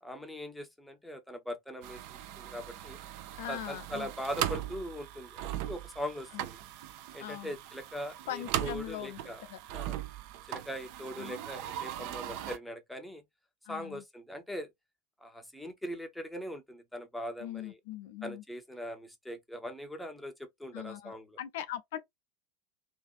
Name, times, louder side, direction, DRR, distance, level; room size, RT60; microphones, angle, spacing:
voice 1, 0.0-3.0 3.4-6.6 7.1-9.4 9.7-10.0 10.5-13.2 13.7-14.7 15.2-17.8 18.2-20.3 20.6-21.4, equal, ahead, 0.6 m, -41 dB
sound 1, 1.8-12.6, right 12 dB, 50° right, 0.4 m, -39 dB
voice 2, 3.4-4.1 6.3-6.4 7.2-7.5 8.3-9.2 9.5-9.6 11.2-11.3 13.7-14.0 17.4-18.4 20.7-22.0, left 12 dB, 55° left, 0.5 m, -40 dB
2.6 x 2.4 x 2.3 m
figure-of-eight pair, 80°, 0 cm